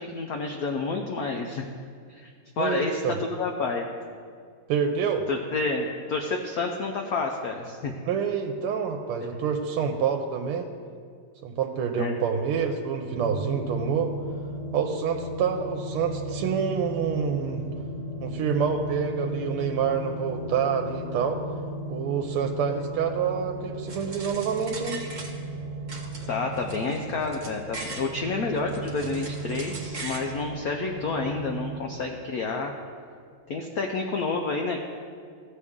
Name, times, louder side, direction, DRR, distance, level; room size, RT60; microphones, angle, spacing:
voice 1, 0.0-1.7 2.1-3.0 3.3-3.8 5.3-7.9 12.0-12.1 26.3-32.7 33.5-34.8, left 4 dB, 80° left, 2 dB, 0.8 m, -29 dB
voice 2, 2.6-3.2 4.7-5.2 8.0-10.7 11.4-14.1 14.7-17.6 18.2-21.4 21.9-25.0, right 7 dB, 90° right, 4 dB, 1.5 m, -27 dB
sound 1, 13.1-31.8, right 1 dB, 75° right, 1.6 m, -36 dB
sound 2, 23.9-25.6 25.9-28.1 28.5-30.3, right 3 dB, 50° right, 0.5 m, -40 dB
15.5 x 6.7 x 3.6 m, 2.1 s
omnidirectional pair, 2.4 m